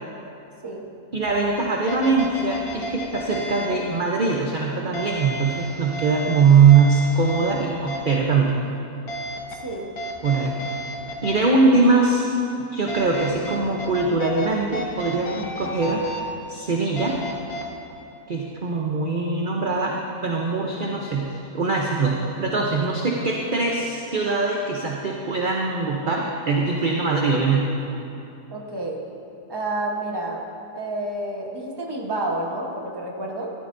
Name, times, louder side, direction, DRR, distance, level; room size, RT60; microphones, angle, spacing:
voice 1, 1.1-8.6 10.2-10.6 11.2-12.3 12.7-16.0 16.5-17.1 18.3-19.9 20.2-27.7, right 4 dB, 45° right, -1 dB, 0.8 m, -21 dB
sound 1, 1.3-1.4 1.9-3.7 4.9-7.5 7.9-8.1 9.1-9.5 10.0-11.3 12.9-14.5 14.7-16.2 17.0-17.6, right 1 dB, 75° left, 1.5 m, -32 dB
voice 2, 9.6-9.9 28.5-29.0 29.5-30.4 30.7-33.5, right 2 dB, 20° right, -1 dB, 1.0 m, -29 dB
14.0 x 12.5 x 2.6 m, 2.7 s
omnidirectional pair, 1.6 m